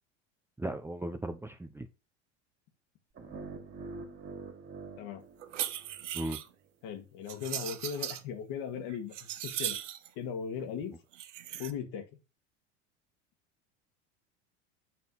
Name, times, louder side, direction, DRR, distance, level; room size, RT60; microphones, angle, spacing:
voice 1, 0.6-1.9 6.1-6.4, right 1 dB, 5° right, 7 dB, 0.7 m, -36 dB
sound 1, 3.2-6.2, right 4 dB, 35° right, 2.2 m, -45 dB
sound 2, 5.4-6.5 7.3-8.2 8.7-10.1 11.1-11.7, right 12 dB, 85° right, 0.7 m, -38 dB
voice 2, 6.8-9.8 10.2-10.9 11.6-12.1, left 7 dB, 60° left, 5 dB, 2.0 m, -38 dB
7.8 x 4.2 x 4.0 m, 0.28 s
hypercardioid pair, 85°, 35 cm